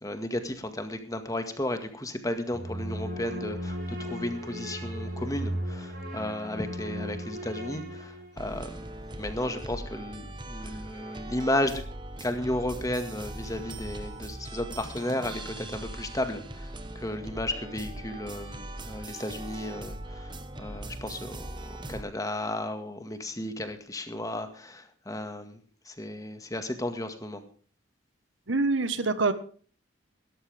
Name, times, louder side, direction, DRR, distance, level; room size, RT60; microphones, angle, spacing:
voice 1, 0.0-8.8 9.2-11.8 12.2-25.6 25.9-27.4, left 1 dB, 20° left, 7 dB, 1.9 m, -34 dB
sound 1, 2.5-8.6, equal, 50° right, 5.3 m, -36 dB
sound 2, 8.4-22.0, right 1 dB, 25° right, 1.2 m, -40 dB
voice 2, 28.5-29.3, right 3 dB, 75° right, 12 dB, 1.4 m, -25 dB
17.5 x 13.0 x 3.5 m, 0.42 s
head